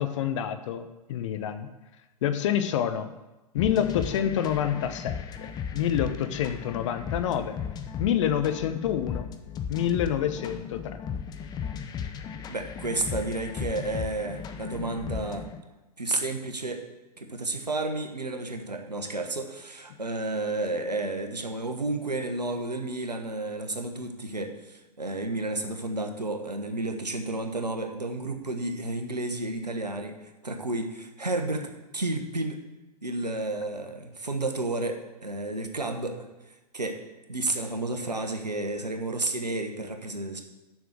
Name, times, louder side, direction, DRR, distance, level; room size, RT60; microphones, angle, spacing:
voice 1, 0.0-1.7 2.2-3.1 3.5-7.6 8.0-9.3 9.7-11.0, left 9 dB, 50° left, 10 dB, 0.8 m, -27 dB
sound 1, 3.6-15.6, left 7 dB, 20° left, 0.7 m, -36 dB
voice 2, 12.5-15.5 16.0-16.8 17.2-30.2 30.4-32.6 33.0-36.2 36.5-37.0 37.3-40.4, right 2 dB, 90° right, 4 dB, 1.2 m, -31 dB
7.2 x 6.0 x 7.6 m, 1.1 s
figure-of-eight pair, 110°, 20 cm